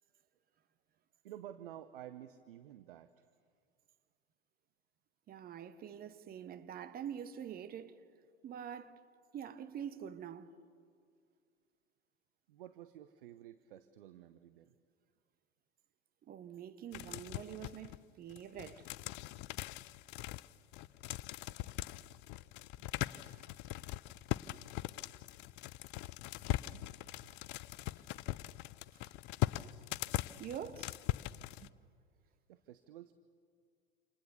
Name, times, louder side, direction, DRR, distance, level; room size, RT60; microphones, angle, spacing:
voice 1, 1.2-3.3 12.5-14.7 21.4-22.0 32.2-33.1, right 12 dB, 60° right, 1.0 m, -52 dB
voice 2, 5.3-8.0 8.4-9.0 9.3-10.5 16.3-18.9 26.7-26.8 30.4-31.0 31.6-31.7, right 9 dB, 30° right, 1.2 m, -45 dB
sound 1, 16.9-18.0 18.3-31.7, left 17 dB, 35° left, 0.6 m, -41 dB
28.0 x 27.5 x 6.9 m
figure-of-eight pair, 80°, 31 cm